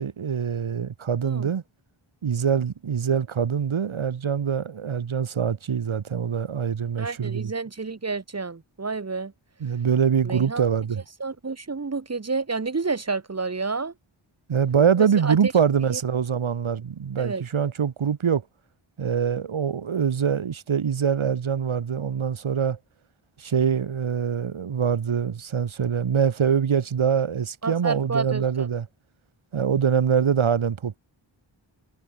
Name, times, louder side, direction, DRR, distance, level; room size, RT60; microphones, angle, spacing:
voice 1, 0.0-1.6 2.2-7.5 9.6-11.0 14.5-18.4 19.0-22.8 23.4-28.9 29.5-31.0, right 7 dB, 75° right, 1.4 m, -24 dB
voice 2, 1.2-1.5 7.0-9.3 10.2-10.7 11.2-13.9 15.0-15.5 15.9-16.0 17.2-17.4 27.6-28.7, right 4 dB, 35° right, 1.3 m, -30 dB
wide cardioid pair, 65°, 48 cm